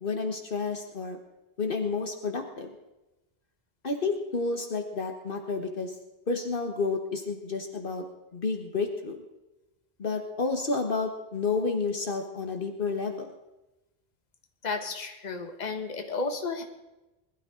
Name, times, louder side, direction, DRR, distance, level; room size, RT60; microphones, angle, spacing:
voice 1, 0.0-1.2 1.6-2.7 3.8-5.9 6.3-8.0 8.3-9.2 10.0-13.3, left 4 dB, 60° left, 4 dB, 1.4 m, -30 dB
voice 2, 14.6-16.6, left 4 dB, 45° left, 5 dB, 1.4 m, -33 dB
21.0 x 12.0 x 3.8 m, 1.0 s
omnidirectional pair, 1.0 m